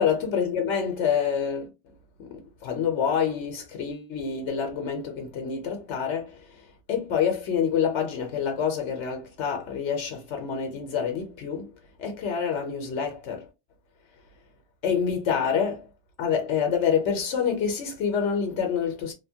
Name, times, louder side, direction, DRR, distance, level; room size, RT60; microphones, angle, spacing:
voice 1, 0.0-1.7 2.2-6.4 6.9-11.7 12.0-13.5 14.8-15.9 16.2-19.1, left 7 dB, 80° left, 1.0 m, -27 dB
2.8 x 2.1 x 2.7 m
omnidirectional pair, 1.2 m